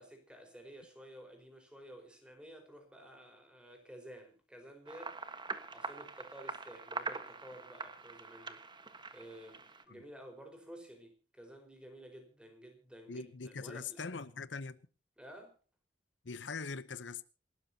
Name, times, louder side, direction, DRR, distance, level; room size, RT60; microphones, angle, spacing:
voice 1, 0.0-5.2 5.7-8.6 9.1-14.2 15.2-15.6, right 1 dB, 5° right, 4.8 m, -53 dB
sound 1, 4.9-9.8, right 4 dB, 25° right, 1.4 m, -44 dB
voice 2, 13.1-14.8 16.2-17.2, left 4 dB, 85° left, 0.9 m, -42 dB
28.0 x 13.5 x 2.9 m
head